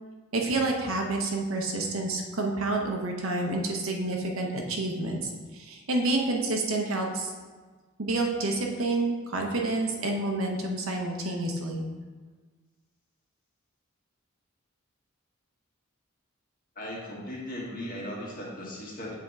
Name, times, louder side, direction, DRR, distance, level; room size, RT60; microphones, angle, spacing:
voice 1, 0.3-7.3 8.0-11.8, right 2 dB, 70° right, 1 dB, 0.8 m, -29 dB
voice 2, 16.7-19.2, left 1 dB, 40° left, -4 dB, 1.4 m, -37 dB
7.5 x 3.6 x 4.0 m, 1.4 s
head